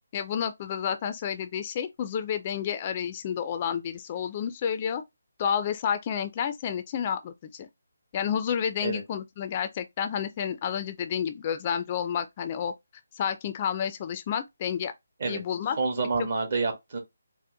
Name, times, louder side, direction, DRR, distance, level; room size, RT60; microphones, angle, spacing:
voice 1, 0.1-5.0 5.4-7.7 8.1-12.7 13.1-14.9 15.3-15.8 16.2-16.3, left 8 dB, 30° left, 0.4 m, -30 dB
voice 2, 15.8-17.0, right 4 dB, 50° right, 1.3 m, -28 dB
4.2 x 2.1 x 2.6 m
figure-of-eight pair, 155°, 0 cm